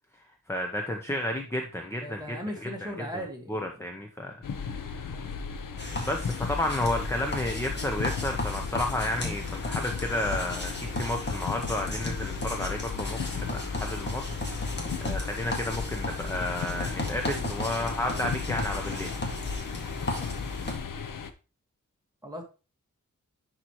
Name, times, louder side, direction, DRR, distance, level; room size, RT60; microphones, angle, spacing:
voice 1, 0.5-4.3 4.7-5.1 5.9-19.1, left 1 dB, 10° left, 3 dB, 0.8 m, -32 dB
voice 2, 2.0-3.6 7.2-7.4 22.2-22.4, equal, 10° right, 0 dB, 1.8 m, -37 dB
sound 1, 4.4-21.3, left 6 dB, 75° left, 0.8 m, -36 dB
sound 2, 5.8-20.8, left 2 dB, 35° left, 1.8 m, -35 dB
10.5 x 4.4 x 3.1 m, 0.31 s
wide cardioid pair, 145°, 32 cm